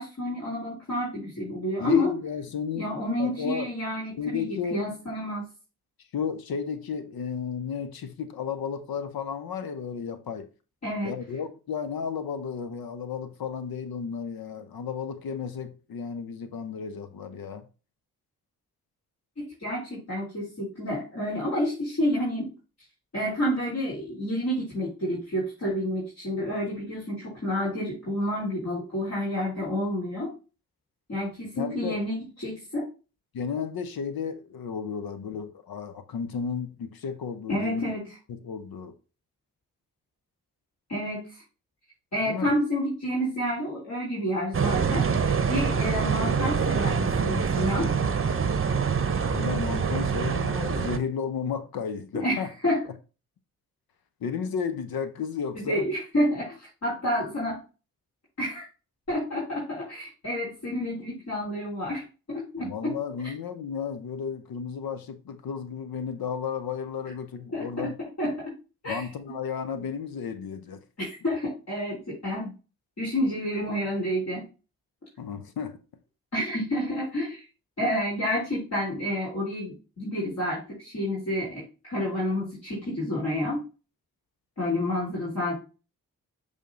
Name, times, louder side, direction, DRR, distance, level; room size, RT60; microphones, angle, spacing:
voice 1, 0.0-2.1 2.7-5.5 10.8-11.1 19.4-22.5 23.1-30.3 31.1-32.9 37.5-38.1 40.9-41.4 42.1-45.0 45.5-47.9 52.1-52.8 55.5-57.6 58.4-58.6 59.1-62.9 67.5-67.9 68.2-68.5 68.8-69.1 71.0-72.5 73.0-74.5 76.3-77.4 77.8-83.6 84.6-85.5, left 1 dB, 45° left, 3.4 m, -29 dB
voice 2, 1.8-2.9 3.2-3.7 4.2-4.8 6.1-10.5 11.0-17.7 31.6-32.0 33.3-37.9 38.3-38.9 42.2-42.5 49.2-52.5 54.2-55.8 62.6-67.9 68.9-70.8 75.2-75.8, left 6 dB, 70° left, 0.9 m, -33 dB
sound 1, 44.5-51.0, right 6 dB, 35° right, 0.8 m, -25 dB
6.6 x 3.7 x 3.8 m
supercardioid pair, 40°, 38 cm